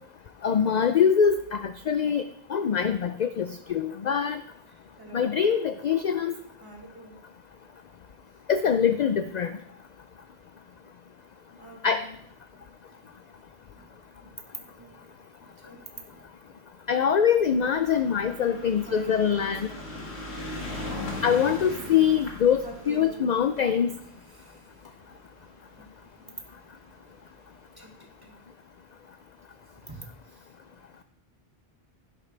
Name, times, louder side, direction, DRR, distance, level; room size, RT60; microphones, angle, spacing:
voice 1, 0.4-2.2 2.5-4.4 5.1-6.3 8.5-9.5 11.8-12.0 16.9-19.7 21.2-23.9, left 7 dB, 55° left, 10 dB, 0.5 m, -23 dB
voice 2, 4.7-5.4 6.6-7.3 11.6-12.2 12.5-13.0 13.6-13.9 14.2-15.1 15.4-16.6 18.3-20.1 22.6-23.2 24.2-24.7 25.7-26.5 26.9-27.0 27.8-28.4 29.7-30.5, equal, 20° right, 0 dB, 2.0 m, -48 dB
sound 1, 17.5-26.0 26.8-26.9 27.1-27.2 27.5-27.6, left 2 dB, 80° left, 2.3 m, -39 dB
11.5 x 10.5 x 3.3 m, 0.69 s
omnidirectional pair, 1.1 m